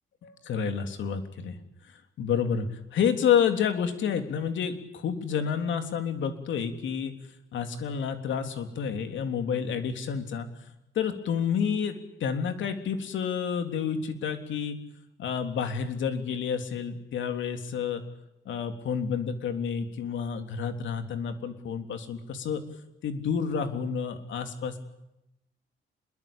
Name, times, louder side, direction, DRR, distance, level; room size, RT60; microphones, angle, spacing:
voice 1, 0.2-1.6 1.9-7.1 7.5-10.5 10.9-11.9 12.2-14.8 15.2-18.0 18.4-22.6 23.0-24.8, left 7 dB, 70° left, 7 dB, 3.3 m, -29 dB
26.5 x 21.5 x 8.9 m, 0.87 s
cardioid pair, 90°, 20 cm